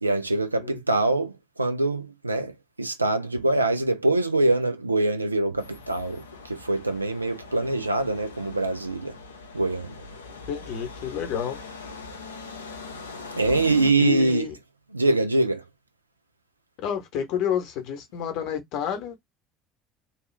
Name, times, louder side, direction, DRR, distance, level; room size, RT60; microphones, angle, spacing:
voice 1, 0.0-1.3 1.6-2.5 2.8-9.1 9.5-9.9 13.4-14.5 14.9-15.6, right 2 dB, 85° right, 0.4 m, -24 dB
sound 1, 5.6-13.9, left 4 dB, 80° left, 0.5 m, -41 dB
voice 2, 10.5-11.6 14.0-14.5 16.8-19.1, left 8 dB, 60° left, 0.9 m, -29 dB
2.9 x 2.3 x 3.1 m
figure-of-eight pair, 60°, 0 cm